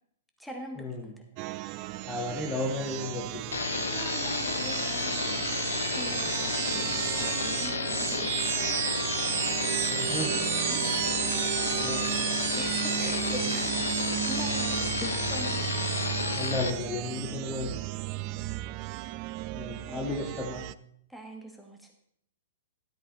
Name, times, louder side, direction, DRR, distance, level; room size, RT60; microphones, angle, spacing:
voice 1, 0.4-1.2 3.9-9.0 10.6-11.0 12.6-13.7 14.2-15.0 15.3-15.7 18.2-18.6 19.9-20.3 21.1-21.9, right 1 dB, ahead, 1 dB, 2.0 m, -43 dB
sound 1, 1.4-20.7, right 18 dB, 40° right, 0.4 m, -33 dB
voice 2, 2.0-3.4 9.9-10.4 11.6-12.1 15.0-15.1 16.3-17.8 19.5-20.6, left 2 dB, 15° left, 0 dB, 1.4 m, -33 dB
sound 2, 3.5-16.7, left 5 dB, 85° left, 0.8 m, -31 dB
12.5 x 8.2 x 4.3 m, 0.69 s
hypercardioid pair, 120°, 0 cm